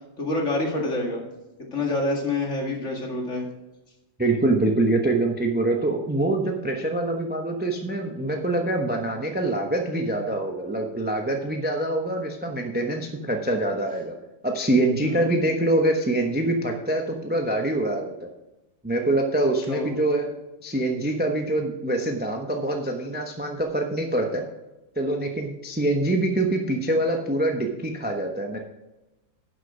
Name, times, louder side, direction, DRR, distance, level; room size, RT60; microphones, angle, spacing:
voice 1, 0.2-1.2 1.7-3.5 15.0-15.4 19.7-19.9, left 2 dB, 40° left, 0 dB, 2.3 m, -27 dB
voice 2, 4.2-14.1 14.4-18.1 18.8-20.3 20.6-24.4 25.0-28.6, right 2 dB, 10° right, 3 dB, 0.4 m, -25 dB
10.5 x 7.4 x 4.9 m, 1.0 s
omnidirectional pair, 2.1 m